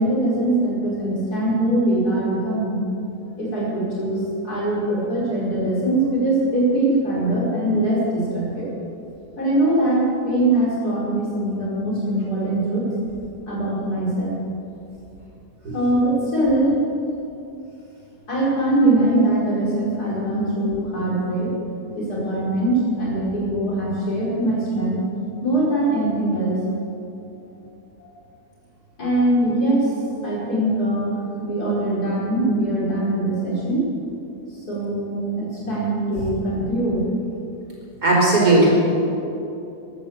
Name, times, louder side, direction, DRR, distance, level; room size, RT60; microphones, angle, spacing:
voice 1, 0.0-2.8 3.4-8.7 9.4-12.9 13.5-14.3 15.7-16.8 18.3-21.5 21.9-25.0 25.4-26.6 28.0-28.1 29.0-29.9 30.2-31.1 31.4-33.9 34.7-37.1, right 1 dB, 65° left, -6 dB, 5.6 m, -22 dB
voice 2, 38.0-38.7, right 2 dB, 70° right, -4 dB, 5.1 m, -16 dB
14.0 x 11.5 x 8.1 m, 2.8 s
omnidirectional pair, 1.8 m